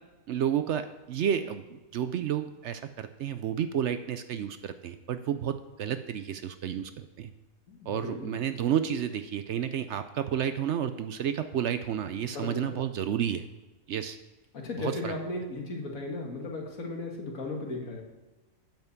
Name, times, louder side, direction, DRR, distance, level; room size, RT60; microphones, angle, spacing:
voice 1, 0.3-7.3 7.9-13.5 13.9-14.2 14.8-15.1, right 9 dB, 65° right, 10 dB, 0.8 m, -31 dB
voice 2, 7.7-8.4 12.3-12.8 14.5-18.0, left 2 dB, 75° left, 1 dB, 2.1 m, -36 dB
9.0 x 5.6 x 7.9 m, 1.1 s
omnidirectional pair, 1.5 m